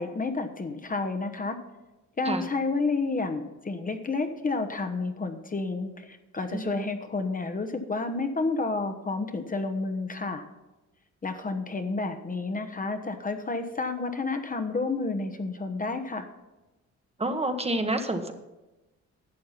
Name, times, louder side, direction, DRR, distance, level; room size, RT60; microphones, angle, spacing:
voice 1, 0.0-1.6 2.2-10.4 11.2-16.3, left 3 dB, 25° left, 7 dB, 1.1 m, -30 dB
voice 2, 17.2-18.3, right 2 dB, 20° right, 6 dB, 1.1 m, -28 dB
12.0 x 7.6 x 5.7 m, 1.0 s
cardioid pair, 90°, 30 cm